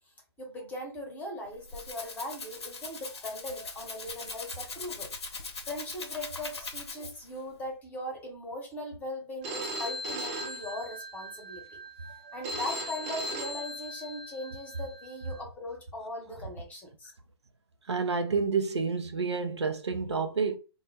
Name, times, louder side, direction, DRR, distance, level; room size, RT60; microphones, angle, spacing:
voice 1, 0.4-5.1 5.7-11.8 12.3-17.1, left 1 dB, 10° left, 0.9 m, -39 dB
Rattle (instrument), 1.4-7.4, left 4 dB, 75° left, 0.7 m, -41 dB
Telephone, 9.4-15.4, equal, 30° right, 0.6 m, -38 dB
voice 2, 17.9-20.6, right 5 dB, 85° right, 0.5 m, -29 dB
2.2 x 2.0 x 3.2 m
figure-of-eight pair, 125°, 14 cm